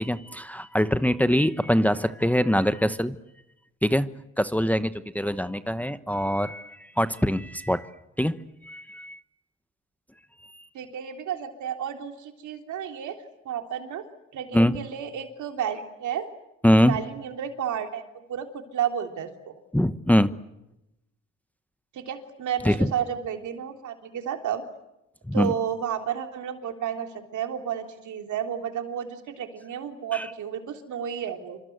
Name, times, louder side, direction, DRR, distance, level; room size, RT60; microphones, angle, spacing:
voice 1, 0.0-3.2 3.8-4.1 4.4-7.9 8.2-9.2 10.5-10.6 14.5-14.8 16.6-16.9 19.7-20.3 22.6-22.9 25.3-25.5 30.1-30.3, equal, 5° left, 11 dB, 1.0 m, -23 dB
voice 2, 10.7-13.1 13.5-14.1 14.3-16.3 16.9-19.6 21.9-24.6 25.3-31.6, right 9 dB, 75° right, 5 dB, 3.5 m, -32 dB
28.0 x 25.5 x 8.0 m, 0.90 s
cardioid pair, 90°, 30 cm